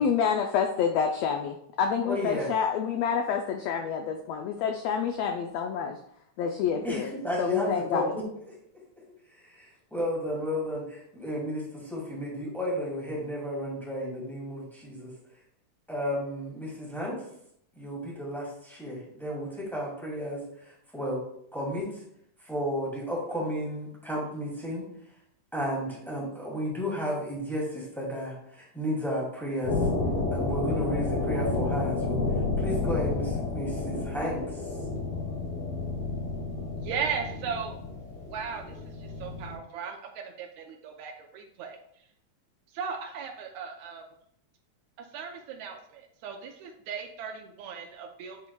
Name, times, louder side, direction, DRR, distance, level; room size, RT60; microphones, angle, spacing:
voice 1, 0.0-6.0 6.4-7.1 7.4-8.1, left 7 dB, 85° left, 4 dB, 1.4 m, -28 dB
voice 2, 2.0-2.5 6.8-8.2 9.4-15.1 15.9-17.2 17.8-21.2 21.5-21.9 22.4-24.9 25.5-29.8 30.3-32.2 32.6-34.5, equal, ahead, -5 dB, 1.8 m, -33 dB
sound 1, 29.6-39.5, left 3 dB, 60° left, 2.2 m, -30 dB
voice 3, 36.8-37.8 38.3-38.8 39.0-41.8 42.7-44.0 45.1-48.4, right 6 dB, 80° right, 3 dB, 1.9 m, -37 dB
9.5 x 4.6 x 2.3 m, 0.70 s
omnidirectional pair, 3.5 m